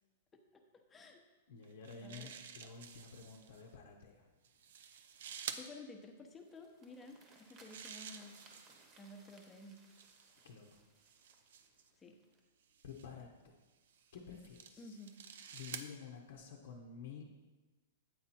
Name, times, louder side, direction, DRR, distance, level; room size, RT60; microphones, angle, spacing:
voice 1, 0.3-0.6 0.9-1.2 2.0-2.3 5.5-8.4 9.0-9.8 12.0-12.2 14.8-15.2, left 2 dB, 15° left, 4 dB, 0.8 m, -53 dB
voice 2, 1.5-4.3 10.4-10.8 12.8-13.5 14.1-15.0 15.5-17.2, left 6 dB, 65° left, 1 dB, 0.8 m, -51 dB
sound 1, 1.6-3.6 4.4-5.7 7.3-8.9 9.8-11.9 12.7-13.1 13.9-15.9, right 8 dB, 70° right, 0.5 m, -50 dB
sound 2, 6.3-12.4, right 3 dB, 25° right, 1.1 m, -64 dB
8.4 x 4.4 x 4.2 m, 1.2 s
hypercardioid pair, 140°, 0 cm